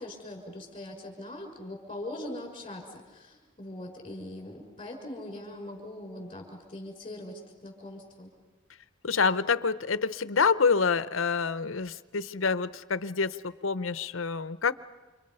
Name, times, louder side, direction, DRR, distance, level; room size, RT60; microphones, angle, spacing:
voice 1, 0.0-8.3, left 1 dB, 25° left, 2 dB, 5.8 m, -41 dB
voice 2, 9.0-14.7, left 5 dB, 80° left, 15 dB, 0.8 m, -27 dB
29.0 x 27.5 x 5.6 m, 1.3 s
head